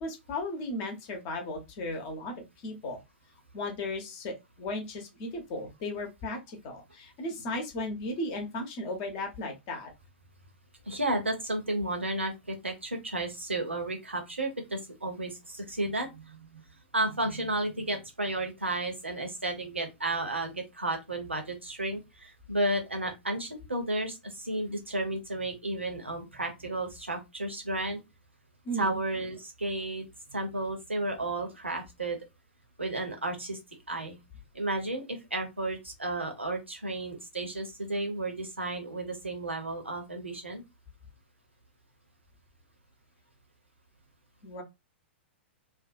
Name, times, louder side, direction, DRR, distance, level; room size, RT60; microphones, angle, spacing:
voice 1, 0.0-2.3 2.6-3.0 3.5-9.9 28.6-29.0 44.4-44.6, left 1 dB, 35° left, 0.8 m, -35 dB
voice 2, 10.9-16.6 16.9-28.0 28.7-30.0 30.3-32.2 32.8-33.6 33.9-34.2 34.5-40.6, right 2 dB, 80° right, 0.8 m, -33 dB
2.6 x 2.2 x 2.5 m
figure-of-eight pair, 105°, 6 cm